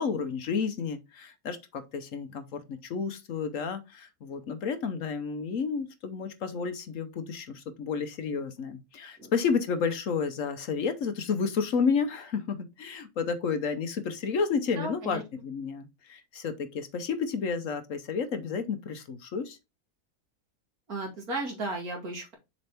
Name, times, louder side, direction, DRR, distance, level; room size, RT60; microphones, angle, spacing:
voice 1, 0.0-19.6, left 5 dB, 60° left, 1.1 m, -31 dB
voice 2, 14.8-15.2 20.9-22.3, right 2 dB, 65° right, 2.7 m, -34 dB
6.9 x 4.2 x 3.4 m
omnidirectional pair, 1.6 m